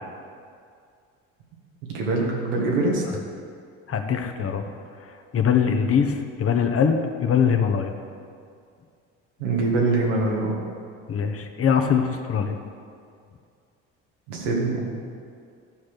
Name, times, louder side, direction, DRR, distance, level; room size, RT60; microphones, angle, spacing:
voice 1, 1.9-3.0 9.4-10.6 14.3-14.8, right 3 dB, 90° right, -2 dB, 2.0 m, -23 dB
voice 2, 3.9-4.6 5.3-7.9 11.1-12.6, left 7 dB, 40° left, 5 dB, 1.1 m, -22 dB
12.5 x 5.0 x 6.3 m, 2.3 s
supercardioid pair, 75°, 36 cm